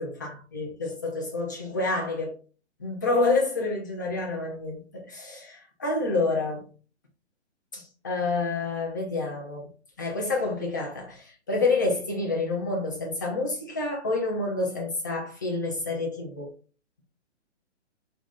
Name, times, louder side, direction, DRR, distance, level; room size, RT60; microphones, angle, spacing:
voice 1, 0.0-2.3 2.8-6.7 7.7-9.7 10.0-16.5, left 3 dB, 20° left, 0.3 m, -28 dB
2.5 x 2.0 x 3.4 m
figure-of-eight pair, 130°, 36 cm